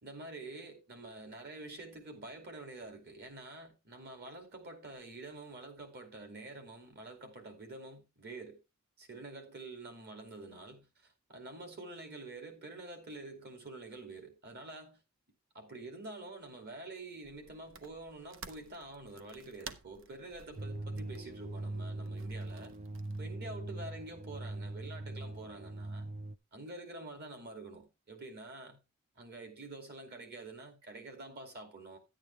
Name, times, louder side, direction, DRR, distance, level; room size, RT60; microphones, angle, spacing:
voice 1, 0.0-8.6 9.0-15.0 15.5-22.8 23.2-26.2 26.5-28.8 29.2-32.0, right 2 dB, 50° right, 2.7 m, -47 dB
sound 1, 17.2-23.2, right 6 dB, 65° right, 0.8 m, -53 dB
sound 2, 20.6-26.4, right 2 dB, 30° right, 0.5 m, -41 dB
10.5 x 8.9 x 3.3 m
head